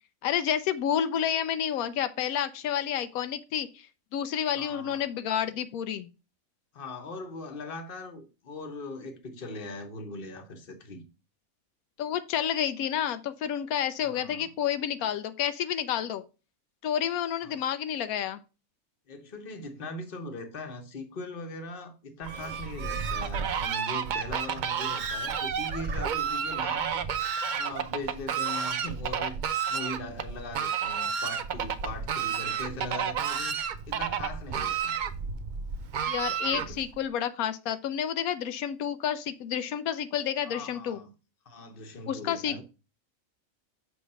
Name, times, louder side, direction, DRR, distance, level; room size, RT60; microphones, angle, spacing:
voice 1, 0.2-3.9 4.1-6.1 12.0-16.2 16.8-18.4 36.1-41.0 42.1-42.6, left 9 dB, 90° left, 1.0 m, -30 dB
voice 2, 4.5-5.1 6.7-11.1 14.0-14.5 17.4-17.6 19.1-27.1 27.5-29.4 29.7-33.6 33.9-34.9 36.4-36.8 40.4-41.1 41.4-42.6, left 2 dB, 40° left, 1.1 m, -40 dB
Fowl, 22.2-37.0, right 7 dB, 75° right, 0.4 m, -31 dB
6.4 x 3.4 x 5.4 m
omnidirectional pair, 1.5 m